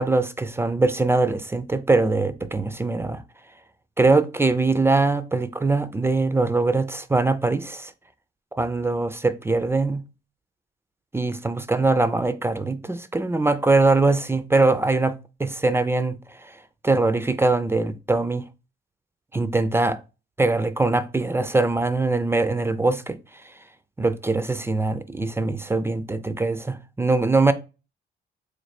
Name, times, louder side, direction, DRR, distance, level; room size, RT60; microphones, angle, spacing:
voice 1, 0.0-3.2 4.0-7.9 8.5-10.0 11.1-16.6 16.8-18.4 19.3-20.0 20.4-23.2 24.0-27.5, right 3 dB, 10° right, 0.3 m, -22 dB
3.2 x 2.3 x 4.2 m
cardioid pair, 90°, 20 cm